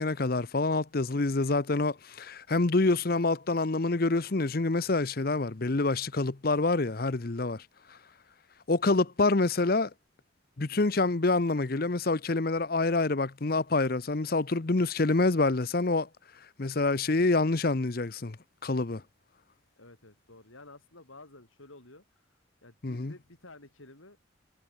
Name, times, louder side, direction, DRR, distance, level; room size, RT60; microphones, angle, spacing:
voice 1, 0.0-7.6 8.7-9.9 10.6-16.1 16.6-18.4 18.6-19.0 22.8-23.1, left 3 dB, 50° left, 0.8 m, -27 dB
voice 2, 19.8-24.2, left 2 dB, 90° left, 5.1 m, -52 dB
head